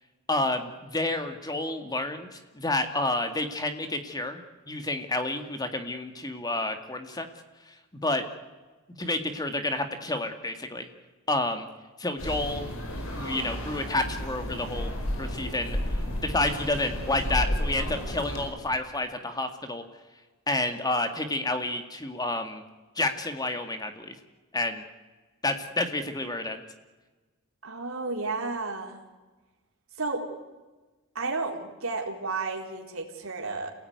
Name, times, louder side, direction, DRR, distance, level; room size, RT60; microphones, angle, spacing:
voice 1, 0.3-4.4 4.7-7.3 8.0-8.2 9.0-10.9 11.3-11.7 12.0-12.6 13.1-14.9 15.2-15.8 16.2-19.8 20.5-22.6 23.0-24.1 24.5-24.8 25.4-26.6, left 2 dB, 20° left, 7 dB, 2.1 m, -29 dB
sound 1, 12.2-18.5, equal, 75° left, 5.3 m, -32 dB
voice 2, 27.6-29.0 30.0-30.2 31.1-33.7, right 3 dB, 70° right, 1 dB, 4.0 m, -32 dB
27.5 x 18.0 x 9.5 m, 1.2 s
head